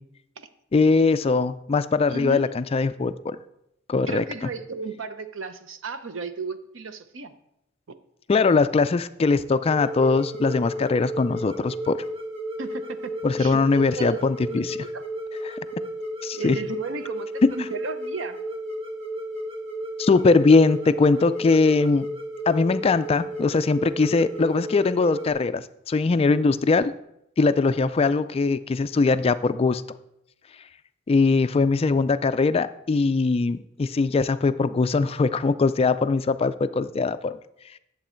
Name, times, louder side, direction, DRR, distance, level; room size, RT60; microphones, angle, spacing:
voice 1, 0.7-3.4 3.9-4.2 8.3-12.0 13.2-14.8 15.4-15.6 16.2-16.6 17.4-17.5 20.0-22.1 22.5-26.9 27.4-29.8 31.1-37.4, left 4 dB, 30° left, 13 dB, 0.3 m, -21 dB
voice 2, 2.1-2.5 4.1-7.3 12.6-15.0 16.3-18.4, right 4 dB, 70° right, 11 dB, 0.8 m, -34 dB
sound 1, 9.6-25.3, right 1 dB, 30° right, 1.8 m, -33 dB
10.5 x 7.5 x 4.4 m, 0.81 s
head